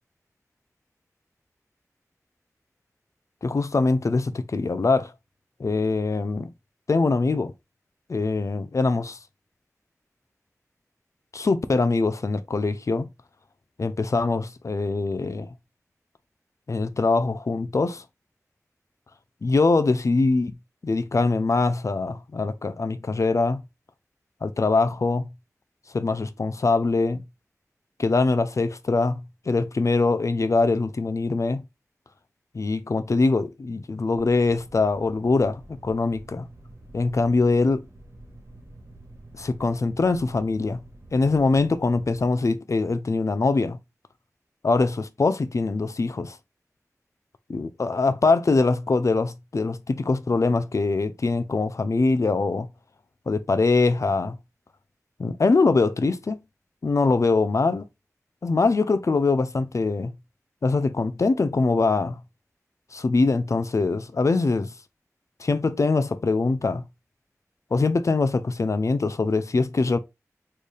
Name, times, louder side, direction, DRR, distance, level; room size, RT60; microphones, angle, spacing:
voice 1, 3.4-5.1 5.6-6.5 6.9-7.5 8.1-9.2 11.3-13.1 13.8-15.5 16.7-18.0 19.4-20.5 20.8-23.6 24.4-25.3 25.9-27.2 28.0-29.2 29.5-31.6 32.5-36.5 36.9-37.8 39.3-40.8 41.1-43.8 44.6-46.4 47.5-52.7 53.3-54.4 55.2-56.4 56.8-57.9 58.4-60.1 60.6-62.2 62.9-64.7 65.4-66.8 67.7-70.0, left 3 dB, 60° left, 0.5 m, -23 dB
sound 1, 34.1-42.3, right 1 dB, 45° right, 1.6 m, -47 dB
4.4 x 3.2 x 3.3 m
wide cardioid pair, 75°, 6 cm